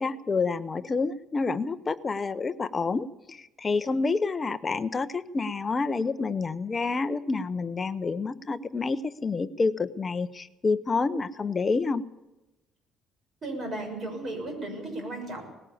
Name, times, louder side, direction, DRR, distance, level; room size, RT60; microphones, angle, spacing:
voice 1, 0.0-12.0, left 4 dB, 20° left, 12 dB, 0.7 m, -28 dB
voice 2, 13.4-15.4, right 2 dB, 35° right, 3 dB, 6.6 m, -35 dB
19.0 x 16.0 x 8.5 m, 0.96 s
cardioid pair, 165°, 0 cm